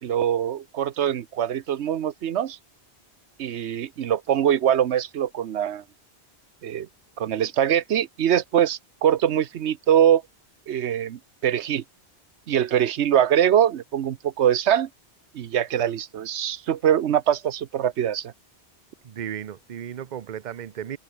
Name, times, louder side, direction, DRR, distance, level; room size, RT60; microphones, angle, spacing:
voice 1, 0.0-2.6 3.4-5.8 6.6-6.9 7.2-10.2 10.7-11.8 12.5-14.9 15.3-18.3, right 10 dB, 75° right, 1.1 m, -23 dB
voice 2, 19.0-21.0, right 9 dB, 45° right, 0.8 m, -35 dB
omnidirectional pair, 1.1 m